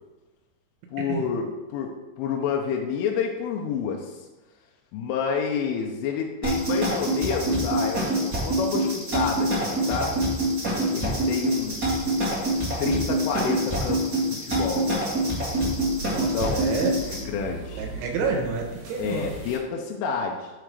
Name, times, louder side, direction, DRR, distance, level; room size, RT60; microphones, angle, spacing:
voice 1, 0.9-1.9 2.2-4.2 4.9-10.2 10.9-12.1 12.8-14.1 14.4-14.9 15.5-15.6 16.0-16.6 17.1-17.9 19.0-20.5, left 6 dB, 80° left, 0 dB, 3.3 m, -29 dB
sound 1, 6.4-17.2, right 1 dB, 20° right, 3.5 m, -25 dB
sound 2, 11.5-19.6, right 2 dB, 45° right, 4.3 m, -41 dB
voice 2, 16.1-16.9 17.8-19.3, right 5 dB, 75° right, 3 dB, 3.5 m, -29 dB
8.0 x 7.9 x 5.0 m, 1.1 s
omnidirectional pair, 5.7 m